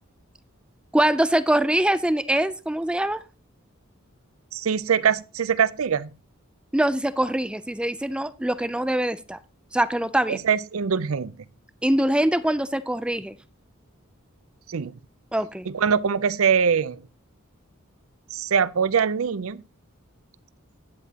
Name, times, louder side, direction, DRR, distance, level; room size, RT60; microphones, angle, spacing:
voice 1, 0.9-3.2 6.7-9.4 9.7-10.4 11.8-13.4 15.3-15.7, right 1 dB, 5° right, 0.4 m, -23 dB
voice 2, 4.5-6.1 10.3-11.3 14.7-14.9 15.7-17.0 18.3-19.6, right 7 dB, 80° right, 0.5 m, -23 dB
11.5 x 9.5 x 2.9 m
head